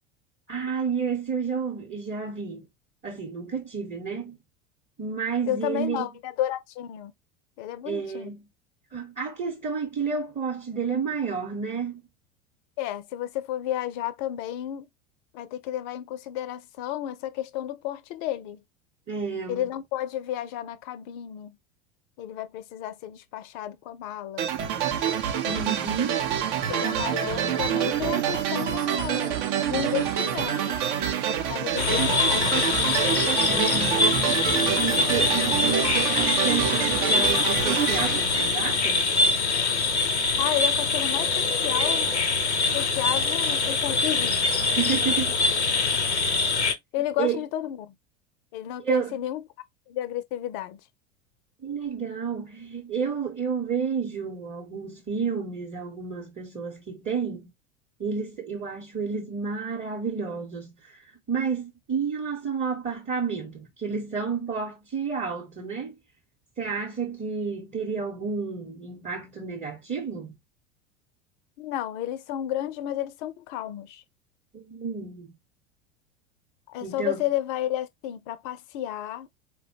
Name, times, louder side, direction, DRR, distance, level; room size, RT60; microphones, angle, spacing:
voice 1, 0.5-2.6 3.0-4.4 5.0-6.1 7.9-8.4 8.9-12.0 19.1-19.7 25.4-26.2 33.5-39.1 44.8-45.3 47.2-47.4 48.8-49.1 51.6-57.5 58.0-66.0 66.6-70.3 74.5-75.3 76.8-77.2, right 5 dB, 20° right, 0.9 m, -31 dB
voice 2, 5.5-7.1 7.6-8.3 12.8-14.9 15.3-18.6 19.5-21.6 22.2-24.5 26.7-30.8 31.5-32.8 40.4-42.1 42.7-44.4 46.9-47.9 48.5-49.4 49.9-50.8 71.6-74.0 76.7-79.3, left 12 dB, 45° left, 0.5 m, -32 dB
sound 1, 24.4-39.2, right 9 dB, 50° right, 0.7 m, -27 dB
sound 2, 31.8-46.7, left 3 dB, 90° left, 0.7 m, -24 dB
4.2 x 2.2 x 2.7 m
figure-of-eight pair, 80°, 33 cm